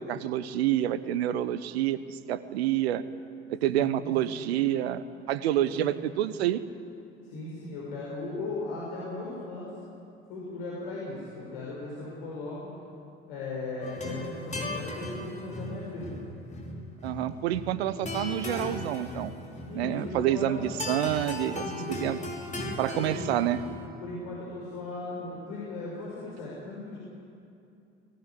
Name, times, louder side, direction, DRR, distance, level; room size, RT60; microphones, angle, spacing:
voice 1, 0.0-3.0 3.5-6.6 17.0-19.3 19.7-22.2 22.8-23.6, right 12 dB, 65° right, 15 dB, 1.1 m, -28 dB
voice 2, 3.7-4.1 5.3-6.0 7.2-9.8 10.3-12.7 13.3-16.1 19.7-20.9 21.6-22.3 22.9-23.3 24.0-27.0, left 2 dB, 60° left, -5 dB, 6.3 m, -38 dB
Spanishy Guitar Thing, 13.8-23.9, left 2 dB, 20° left, 5.3 m, -37 dB
21.5 x 19.5 x 9.8 m, 2.6 s
figure-of-eight pair, 60°, 34 cm